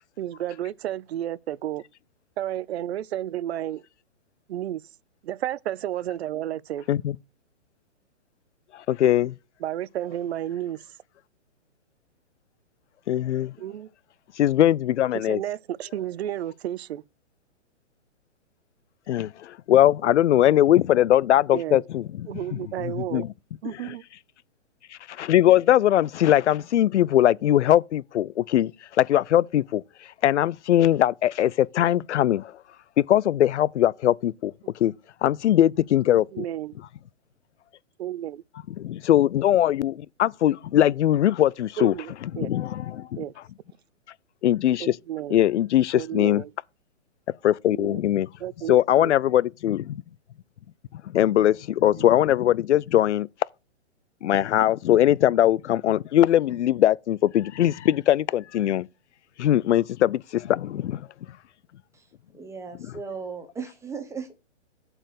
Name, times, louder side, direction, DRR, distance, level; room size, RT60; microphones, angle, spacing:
voice 1, 0.2-1.8 2.4-3.8 4.5-4.8 5.2-6.9 9.6-10.9 13.6-13.9 15.1-17.0 21.5-21.8 22.3-23.3 23.6-24.0 36.2-36.8 38.0-38.4 41.8-42.5 43.2-43.3 44.8-45.4 45.9-46.5 47.7-48.0 48.4-49.1 51.9-52.1, right 12 dB, 65° right, 0.6 m, -32 dB
voice 2, 8.9-9.3 13.1-13.5 14.4-15.4 19.1-22.3 22.8-23.3 25.2-28.7 29.0-29.8 30.2-32.5 33.0-34.5 34.8-34.9 35.2-36.4 38.8-41.9 42.4-43.1 44.4-44.9 45.3-46.4 47.4-48.3 48.7-50.0 51.1-53.3 54.2-58.9 59.4-61.0, left 12 dB, 75° left, 0.5 m, -21 dB
voice 3, 62.3-64.3, right 5 dB, 10° right, 1.1 m, -36 dB
7.9 x 4.5 x 6.5 m
hypercardioid pair, 145°, 36 cm